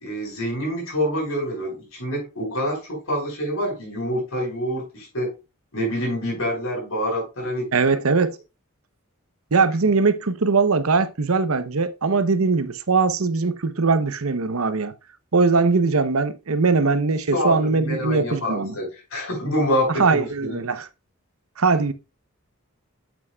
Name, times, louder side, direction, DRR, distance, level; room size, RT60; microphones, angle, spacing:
voice 1, 0.0-5.3 5.7-7.7 17.3-20.6, equal, 70° left, 5.1 m, -26 dB
voice 2, 7.7-8.4 9.5-14.9 15.3-18.8 19.9-20.8 21.6-21.9, right 4 dB, 80° right, 0.9 m, -21 dB
8.4 x 7.7 x 2.3 m
head